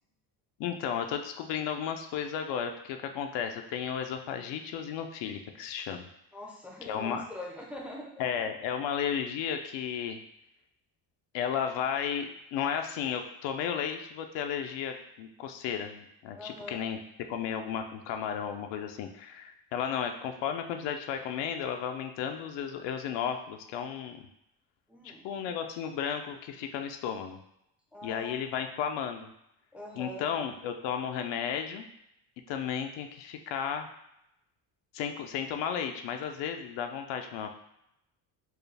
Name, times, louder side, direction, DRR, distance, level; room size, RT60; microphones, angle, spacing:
voice 1, 0.6-6.1 6.8-7.2 8.2-10.2 11.3-17.0 17.3-24.3 25.0-27.4 28.0-29.3 30.0-31.9 32.5-33.9 34.9-37.6, left 8 dB, 70° left, 6 dB, 0.6 m, -34 dB
voice 2, 6.3-8.1 16.3-16.8 24.9-25.3 27.9-28.4 29.7-30.3, left 1 dB, 5° right, -1 dB, 0.5 m, -43 dB
4.6 x 2.3 x 3.3 m, 0.81 s
cardioid pair, 125°, 45 cm